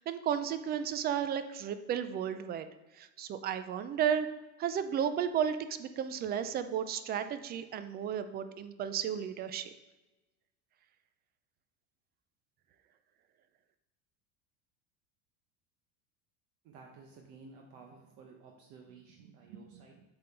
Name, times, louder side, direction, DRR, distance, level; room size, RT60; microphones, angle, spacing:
voice 1, 0.0-2.7 3.0-4.3 4.6-9.7, right 8 dB, 25° right, 11 dB, 0.4 m, -33 dB
voice 2, 16.6-20.0, right 5 dB, 55° right, 2 dB, 0.9 m, -53 dB
7.7 x 3.8 x 4.4 m, 1.1 s
supercardioid pair, 135°, 37 cm